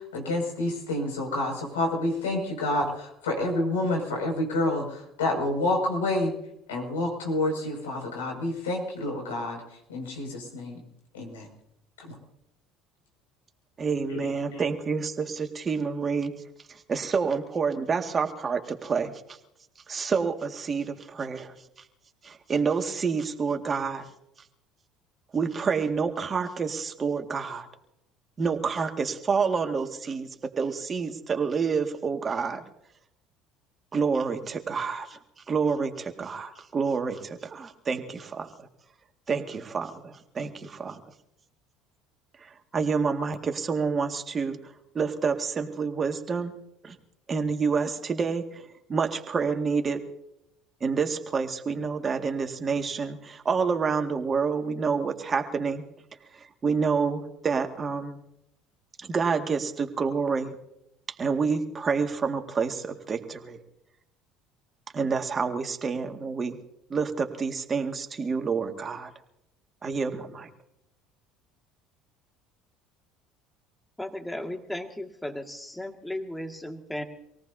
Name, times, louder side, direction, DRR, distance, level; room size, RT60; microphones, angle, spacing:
voice 1, 0.0-6.3 6.7-10.8 11.1-11.5 12.0-12.2 14.1-14.6, left 1 dB, 90° left, 1 dB, 6.2 m, -29 dB
voice 2, 13.8-16.3 16.7-19.4 19.9-21.5 22.2-24.1 25.3-27.7 28.4-32.6 33.9-35.2 35.5-38.7 39.3-41.0 42.4-44.6 44.9-46.5 46.8-47.0 47.3-48.6 48.9-50.0 50.8-55.8 56.3-58.2 59.0-60.6 61.2-63.6 64.9-66.6 66.9-69.1 69.8-70.5, right 5 dB, 35° right, 5 dB, 2.0 m, -28 dB
voice 3, 74.0-77.0, left 1 dB, 5° left, 4 dB, 2.1 m, -35 dB
26.5 x 18.0 x 2.8 m, 0.81 s
hypercardioid pair, 70°, 0 cm